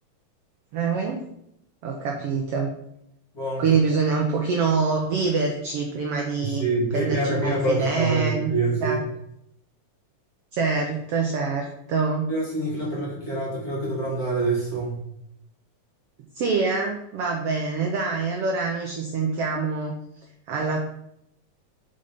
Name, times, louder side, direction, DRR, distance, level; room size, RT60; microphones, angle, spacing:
voice 1, 0.7-1.2 1.8-2.7 3.6-6.6 6.9-8.5 8.8-9.0 10.5-12.3 16.3-19.9 20.5-20.8, right 4 dB, 70° right, 1 dB, 1.4 m, -25 dB
voice 2, 3.3-3.7 6.4-9.0 12.3-15.0, right 2 dB, 35° left, -5 dB, 2.0 m, -26 dB
5.5 x 5.3 x 5.1 m, 0.77 s
omnidirectional pair, 3.6 m